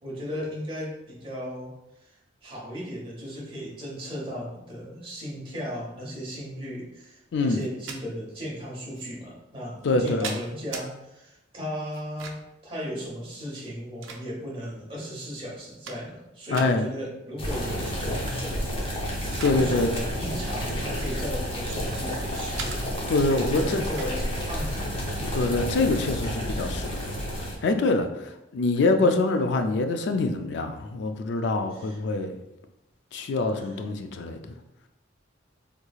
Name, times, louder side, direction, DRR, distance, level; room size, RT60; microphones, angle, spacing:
voice 1, 0.0-1.7 2.0-22.8 23.2-24.9 29.0-29.1 31.7-32.0 33.6-33.7, equal, 25° right, -5 dB, 1.0 m, -36 dB
voice 2, 7.3-7.6 9.8-10.4 16.5-16.9 19.4-19.9 23.1-23.8 25.3-27.1 27.4-32.3 33.1-34.4, left 3 dB, 60° left, 7 dB, 0.3 m, -25 dB
sound 1, 7.6-8.0 8.9-9.1 9.8-10.9 11.9-12.6 13.5-14.6 15.2-15.3 15.6-16.2 16.5-16.7 18.1-18.4 18.8-19.6 19.9-20.1 20.9-22.0 22.6-22.8 23.9-24.1, right 5 dB, 75° right, 0.5 m, -39 dB
sound 2, 17.4-27.6, equal, 30° left, 0.7 m, -30 dB
3.5 x 3.1 x 2.3 m, 0.90 s
head